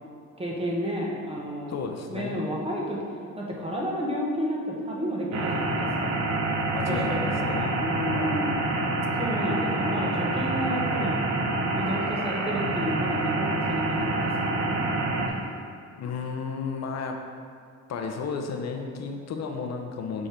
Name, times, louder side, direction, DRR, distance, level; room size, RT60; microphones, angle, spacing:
voice 1, 0.4-1.8 2.1-3.0 3.4-6.2 6.8-8.6 9.2-11.2 11.7-14.8, equal, 20° right, -3 dB, 1.3 m, -31 dB
voice 2, 1.7-2.4 6.7-7.7 8.1-8.5 15.3-15.6 16.0-17.2 17.9-20.3, left 5 dB, 60° left, 3 dB, 0.8 m, -33 dB
sound 1, 5.3-15.3, right 2 dB, 70° right, 1.0 m, -27 dB
6.7 x 3.8 x 4.5 m, 2.2 s
cardioid pair, 90°, 30 cm